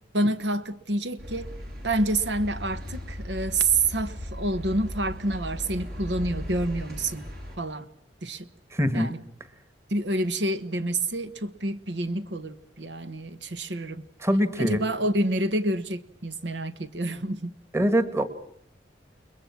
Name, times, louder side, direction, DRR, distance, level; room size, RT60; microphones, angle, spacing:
voice 1, 0.1-1.5 1.8-7.2 7.6-7.9 8.2-8.5 8.9-9.2 9.9-14.0 14.6-17.5, right 2 dB, 80° right, 13 dB, 1.4 m, -28 dB
sound 1, 1.2-7.6, equal, 60° right, 6.4 m, -37 dB
voice 2, 8.7-9.2 14.2-14.8 17.7-18.3, equal, 15° right, 12 dB, 1.7 m, -23 dB
29.5 x 21.5 x 5.9 m, 0.70 s
head